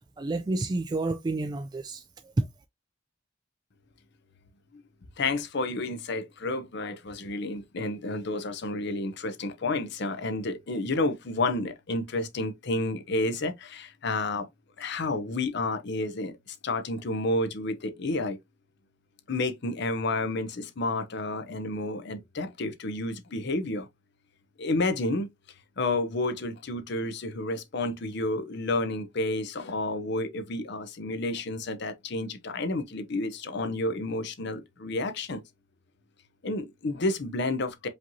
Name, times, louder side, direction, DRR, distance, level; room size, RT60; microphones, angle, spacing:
voice 1, 0.2-2.5, right 2 dB, 20° right, 0.3 m, -30 dB
voice 2, 5.2-14.5 14.8-18.4 19.3-23.9 24.6-25.3 25.8-35.4 36.4-37.9, left 2 dB, 60° left, 0.7 m, -30 dB
5.0 x 2.9 x 2.7 m
head